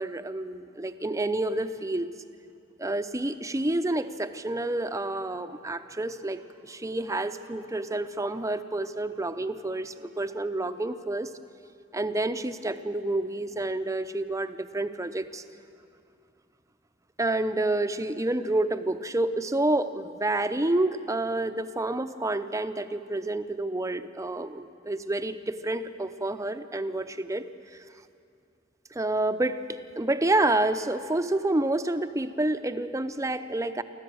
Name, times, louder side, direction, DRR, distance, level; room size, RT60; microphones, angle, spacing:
voice 1, 0.0-2.1 2.8-11.3 11.9-15.4 17.2-27.8 28.9-33.8, right 2 dB, 15° right, 10 dB, 0.7 m, -29 dB
25.0 x 15.0 x 7.9 m, 2.4 s
head